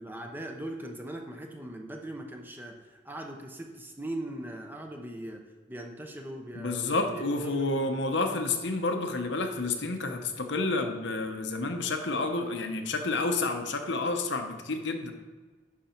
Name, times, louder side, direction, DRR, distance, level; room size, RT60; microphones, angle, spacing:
voice 1, 0.0-7.9, right 1 dB, 10° right, 3 dB, 0.8 m, -40 dB
voice 2, 6.5-15.1, left 3 dB, 70° left, 5 dB, 0.9 m, -30 dB
10.5 x 5.2 x 4.5 m, 1.4 s
head